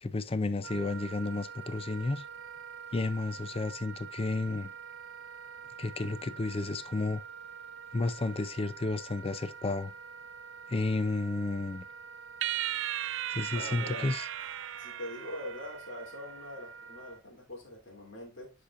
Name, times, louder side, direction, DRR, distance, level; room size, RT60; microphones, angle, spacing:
voice 1, 0.0-2.2 2.9-4.7 5.8-7.2 7.9-9.9 10.7-11.8 13.3-14.2, left 3 dB, 30° left, 0.5 m, -32 dB
Wind instrument woodwind instrument, 0.6-17.2, right 6 dB, 85° right, 0.7 m, -46 dB
sound 1, 12.4-16.0, right 12 dB, 70° right, 0.4 m, -36 dB
voice 2, 13.5-14.1 14.8-18.5, left 1 dB, 70° left, 3.0 m, -43 dB
10.0 x 5.0 x 2.5 m
head